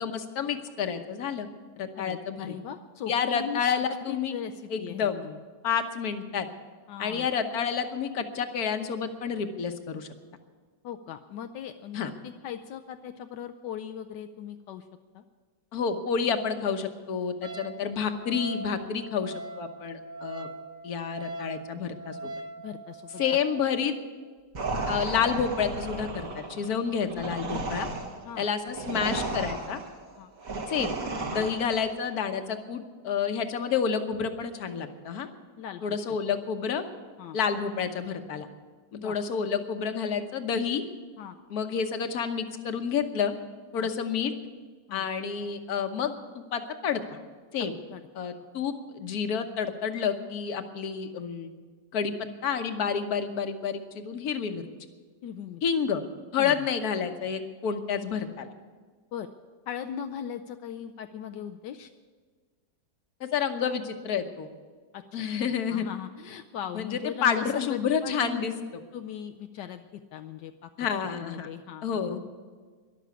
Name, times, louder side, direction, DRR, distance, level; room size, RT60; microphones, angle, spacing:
voice 1, 0.0-1.5 1.8-2.5 3.1-4.4 4.7-5.3 5.6-6.5 7.0-10.1 11.9-12.1 15.7-20.5 20.8-22.3 23.2-23.9 24.9-27.9 28.4-29.8 30.7-31.0 31.3-35.3 35.8-36.8 37.3-38.5 38.9-40.8 41.5-43.3 43.7-44.3 44.9-47.0 47.5-47.7 48.1-51.5 51.9-52.1 52.4-54.6 55.6-56.0 56.3-58.5 63.2-64.5 65.1-65.8 66.7-68.5 70.8-71.5 71.8-72.2, left 7 dB, 65° left, 7 dB, 1.5 m, -29 dB
voice 2, 1.9-3.7 4.1-5.4 6.9-7.3 10.8-14.9 15.1-15.2 22.6-23.2 28.2-28.5 30.2-30.3 31.3-31.5 35.6-36.2 37.2-37.4 39.0-39.2 41.2-41.4 43.8-43.9 44.9-45.1 47.6-48.0 55.2-55.6 56.4-56.6 59.1-59.3 59.7-61.9 64.9-65.0 65.4-70.7 71.2-72.0, left 8 dB, 85° left, 6 dB, 1.3 m, -39 dB
Wind instrument woodwind instrument, 17.4-23.6, right 2 dB, 35° right, 0.9 m, -41 dB
sound 1, 24.5-31.9, right 2 dB, 55° right, 2.2 m, -34 dB
13.5 x 11.5 x 8.3 m, 1.5 s
omnidirectional pair, 1.8 m